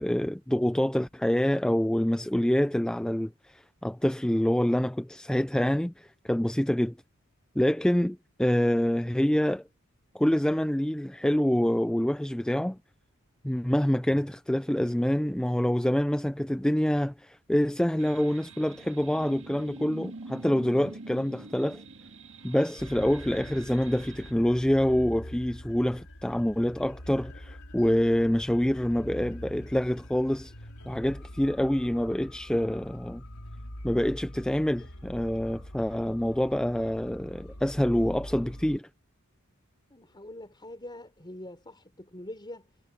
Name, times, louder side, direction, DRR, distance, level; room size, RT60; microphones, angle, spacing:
voice 1, 0.0-7.0 7.6-9.6 10.1-12.8 13.4-21.8 22.4-30.5 30.9-33.2 33.8-38.9, equal, 5° left, 0.3 m, -26 dB
sound 1, 18.0-24.3, right 3 dB, 60° right, 1.8 m, -46 dB
sound 2, 22.8-38.8, left 1 dB, 75° left, 5.0 m, -44 dB
voice 2, 39.9-42.8, left 1 dB, 20° left, 4.1 m, -44 dB
head